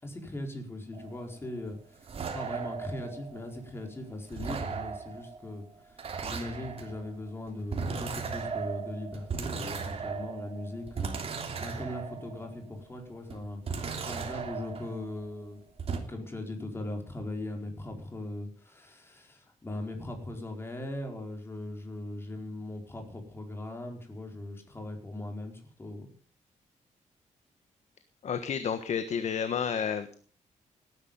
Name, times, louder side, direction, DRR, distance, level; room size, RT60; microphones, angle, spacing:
voice 1, 0.0-2.1 2.3-11.2 11.6-15.6 16.1-26.1, left 1 dB, 20° left, 3 dB, 4.5 m, -39 dB
sound 1, 0.9-3.9 4.3-12.8 13.3-15.5 15.8-16.0, right 5 dB, 45° right, 3.2 m, -37 dB
voice 2, 28.2-30.1, left 7 dB, 60° left, 10 dB, 1.4 m, -30 dB
18.5 x 11.0 x 5.5 m, 0.43 s
wide cardioid pair, 145°, 13 cm